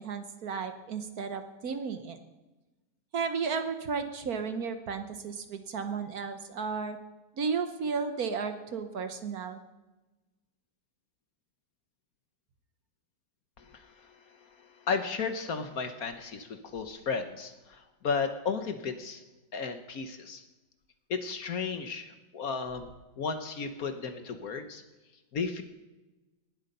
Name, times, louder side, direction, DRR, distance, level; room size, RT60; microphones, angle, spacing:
voice 1, 0.0-2.2 3.1-7.0 7.4-9.6, right 5 dB, 60° right, 8 dB, 1.4 m, -33 dB
voice 2, 13.6-19.2 19.5-20.4 21.1-24.8 25.3-25.6, left 5 dB, 55° left, 8 dB, 1.4 m, -34 dB
19.0 x 8.1 x 5.4 m, 1.1 s
omnidirectional pair, 2.0 m